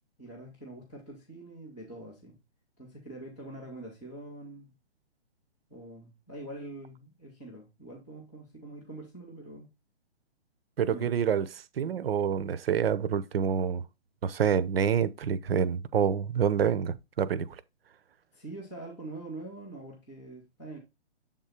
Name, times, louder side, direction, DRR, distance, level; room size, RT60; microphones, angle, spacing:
voice 1, 0.2-2.4 2.8-4.8 5.7-9.7 10.9-11.2 18.3-20.8, right 2 dB, ahead, 0.3 m, -44 dB
voice 2, 10.8-11.5 11.8-13.8 14.2-17.5, right 8 dB, 60° right, 0.7 m, -27 dB
7.4 x 3.7 x 4.2 m
hypercardioid pair, 140°, 34 cm